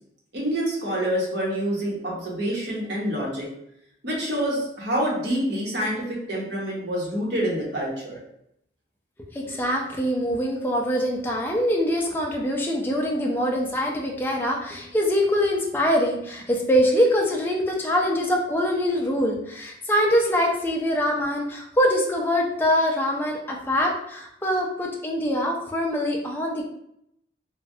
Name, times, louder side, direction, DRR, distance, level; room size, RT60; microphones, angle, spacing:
voice 1, 0.3-3.5 4.0-8.2, equal, 70° right, -4 dB, 1.0 m, -27 dB
voice 2, 9.3-26.6, equal, 10° left, -1 dB, 0.4 m, -24 dB
3.1 x 2.2 x 2.6 m, 0.75 s
head